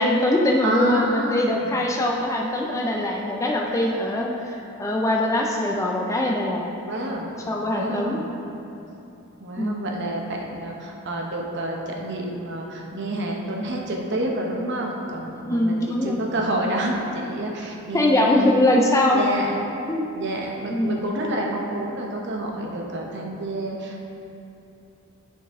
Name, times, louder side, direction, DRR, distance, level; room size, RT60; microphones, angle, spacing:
voice 1, 0.0-6.7 7.5-8.2 9.6-9.9 15.4-16.3 17.9-19.2 19.9-20.1 20.7-21.0, left 1 dB, 15° left, 0 dB, 0.3 m, -22 dB
voice 2, 0.6-1.7 6.8-7.3 7.7-8.3 9.4-18.5 19.1-19.5 20.2-24.0, right 1 dB, 50° right, 0 dB, 0.8 m, -28 dB
9.6 x 4.0 x 3.6 m, 2.8 s
head